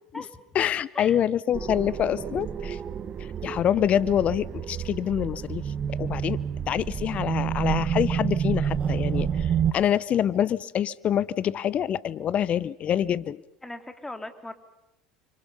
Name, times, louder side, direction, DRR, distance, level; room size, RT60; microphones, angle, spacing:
voice 1, 0.5-2.8 3.2-6.4 6.7-13.4, left 10 dB, 40° left, 20 dB, 0.9 m, -26 dB
sound 1, 1.5-9.7, right 8 dB, 35° right, 1.1 m, -29 dB
voice 2, 13.6-14.5, left 2 dB, 10° left, 7 dB, 3.0 m, -38 dB
29.5 x 25.5 x 5.6 m, 0.83 s
hypercardioid pair, 75°, 3 cm